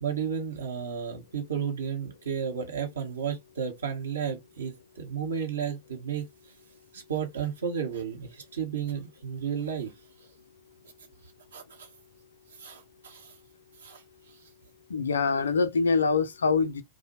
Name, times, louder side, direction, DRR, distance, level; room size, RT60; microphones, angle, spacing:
voice 1, 0.0-6.3 6.9-9.9 11.5-11.9 12.6-13.3 13.8-14.0, right 7 dB, 65° right, 0.8 m, -33 dB
voice 2, 14.9-16.8, left 4 dB, 70° left, 0.3 m, -24 dB
2.6 x 2.0 x 2.9 m
figure-of-eight pair, 90°, 0 cm